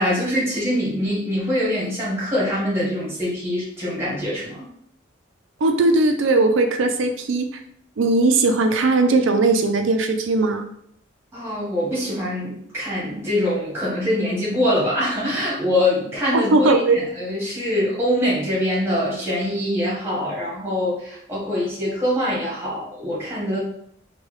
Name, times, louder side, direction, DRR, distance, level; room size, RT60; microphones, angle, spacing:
voice 1, 0.0-4.6 11.3-23.6, left 1 dB, 15° right, -7 dB, 1.2 m, -24 dB
voice 2, 5.6-7.5 8.0-10.7 16.3-17.0, right 3 dB, 80° right, 6 dB, 0.4 m, -18 dB
3.1 x 2.3 x 3.1 m, 0.68 s
head